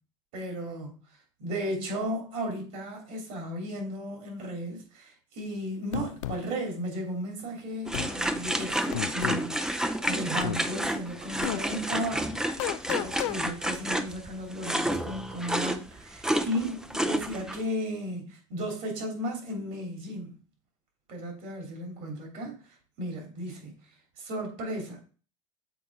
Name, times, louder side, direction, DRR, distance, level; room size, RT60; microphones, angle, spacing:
voice 1, 0.3-1.0 1.4-12.4 12.8-20.4 21.1-23.8 24.2-25.0, equal, 55° right, 2.9 m, -35 dB
sound 1, 5.9-6.4 7.9-8.1 8.9-9.4 10.4-10.6 11.4-11.6 12.6-13.4, left 14 dB, 75° left, 0.4 m, -32 dB
sound 2, 7.9-17.6, right 1 dB, 5° right, 0.5 m, -30 dB
7.2 x 4.3 x 3.5 m
hypercardioid pair, 85°, 16 cm